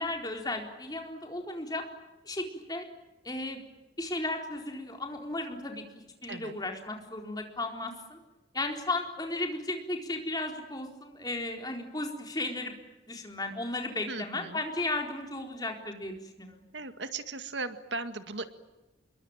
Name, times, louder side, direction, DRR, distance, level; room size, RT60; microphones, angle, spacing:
voice 1, 0.0-1.8 2.2-2.9 3.2-3.6 4.0-5.8 6.2-8.2 8.5-12.7 13.1-16.7, left 2 dB, 20° left, 3 dB, 4.2 m, -35 dB
voice 2, 14.1-14.6 16.7-18.5, right 3 dB, 80° right, 9 dB, 2.0 m, -37 dB
27.5 x 22.5 x 9.0 m, 1.1 s
head